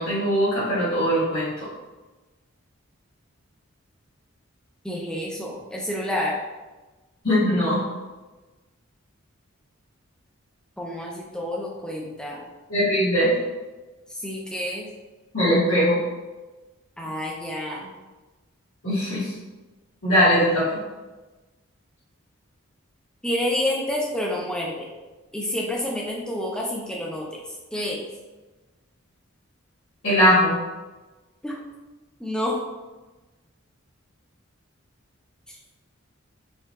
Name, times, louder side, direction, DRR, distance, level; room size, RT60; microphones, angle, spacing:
voice 1, 0.0-1.5 7.2-7.8 12.7-13.3 15.3-16.0 18.8-19.3 20.0-20.8 30.0-30.5, equal, 75° left, -15 dB, 1.5 m, -20 dB
voice 2, 4.8-6.4 10.8-12.4 14.1-14.9 17.0-17.9 23.2-24.9 25.3-27.4 27.7-28.1 31.4-31.6 32.2-32.6 35.5-35.6, left 1 dB, 5° left, -3 dB, 0.4 m, -29 dB
4.5 x 2.4 x 2.4 m, 1.2 s
head